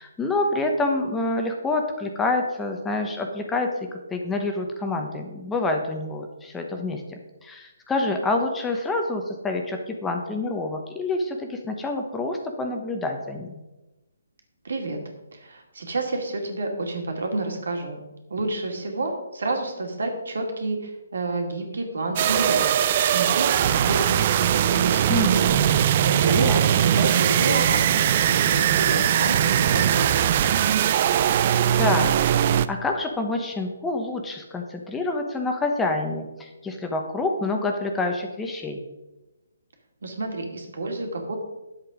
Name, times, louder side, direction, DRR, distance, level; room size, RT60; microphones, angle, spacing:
voice 1, 0.0-3.7 4.1-13.5 25.1-25.6 26.3-26.6 31.8-32.1 32.7-38.8, left 2 dB, 10° left, 3 dB, 1.0 m, -27 dB
voice 2, 14.6-15.0 15.3-18.0 18.3-22.7 23.0-25.6 26.0-30.6 40.0-41.4, right 2 dB, 75° right, 3 dB, 2.5 m, -29 dB
sound 1, 22.2-32.7, right 10 dB, 35° right, 0.4 m, -20 dB
10.0 x 7.7 x 5.1 m, 1.0 s
hypercardioid pair, 155°, 0 cm